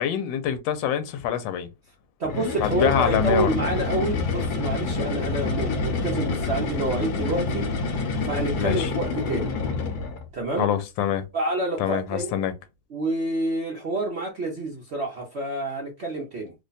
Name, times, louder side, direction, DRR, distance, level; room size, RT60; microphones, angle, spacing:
voice 1, 0.0-1.7 2.6-3.5 8.6-8.9 10.6-11.2 11.8-12.5, left 9 dB, 80° left, 1.3 m, -25 dB
sound 1, 2.2-10.3, left 3 dB, 65° left, 1.1 m, -27 dB
voice 2, 2.2-7.7 8.2-9.5 10.3-10.7 11.3-12.3 12.9-16.5, right 2 dB, 65° right, 0.6 m, -28 dB
3.1 x 2.2 x 3.9 m
omnidirectional pair, 2.1 m